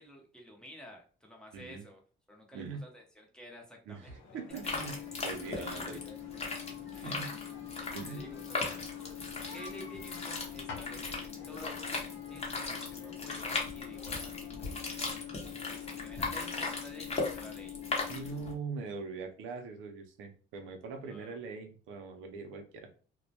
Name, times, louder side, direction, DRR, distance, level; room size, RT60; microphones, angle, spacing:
voice 1, 0.0-2.0 2.3-4.1 5.1-6.1 6.6-7.2 8.0-8.8 9.5-14.7 16.0-17.8 21.0-21.4, equal, 5° left, 0 dB, 0.8 m, -51 dB
voice 2, 1.5-1.8 2.5-2.8 3.9-5.0 5.2-6.0 6.9-7.3 7.9-8.3 18.1-22.9, right 5 dB, 90° right, 5 dB, 0.5 m, -42 dB
sound 1, 4.0-16.0, left 4 dB, 75° left, 0.7 m, -52 dB
sound 2, 4.5-18.5, left 4 dB, 30° left, 0.8 m, -38 dB
2.1 x 2.1 x 2.7 m, 0.38 s
cardioid pair, 90°, 20 cm